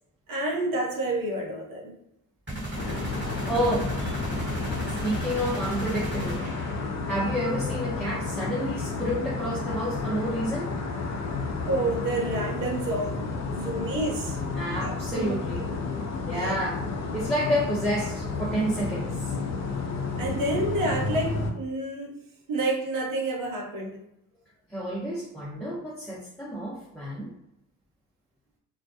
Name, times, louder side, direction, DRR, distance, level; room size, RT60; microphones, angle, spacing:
voice 1, 0.3-2.0 11.6-14.4 14.8-15.9 16.3-16.6 20.2-22.2 22.5-24.0, right 2 dB, 75° right, 0 dB, 0.8 m, -29 dB
sound 1, 2.5-7.2, right 1 dB, 30° right, 1.3 m, -34 dB
sound 2, 2.8-21.5, left 4 dB, 50° left, 0.6 m, -31 dB
voice 2, 2.8-3.2 3.4-4.1 5.0-6.5 7.1-10.7 14.5-15.6 16.3-16.8 17.1-19.3 24.7-27.3, equal, 5° left, -6 dB, 0.7 m, -30 dB
2.2 x 2.1 x 2.7 m, 0.85 s
supercardioid pair, 50°, 34 cm